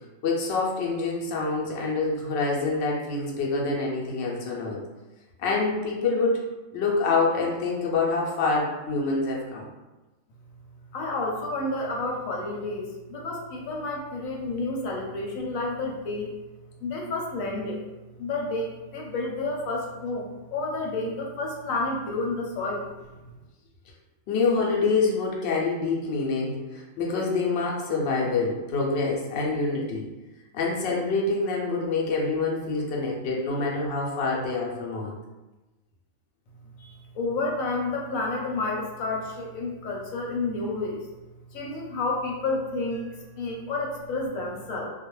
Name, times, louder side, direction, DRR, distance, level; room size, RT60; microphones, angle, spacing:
voice 1, 0.2-4.8 5.4-6.4 6.7-9.7 24.3-30.1 30.5-35.1, left 3 dB, 60° left, -2 dB, 0.8 m, -26 dB
voice 2, 10.9-16.3 16.8-17.8 18.2-22.9 36.8-41.1 41.5-44.9, left 2 dB, 85° left, -1 dB, 1.0 m, -30 dB
2.4 x 2.2 x 3.0 m, 1.1 s
omnidirectional pair, 1.4 m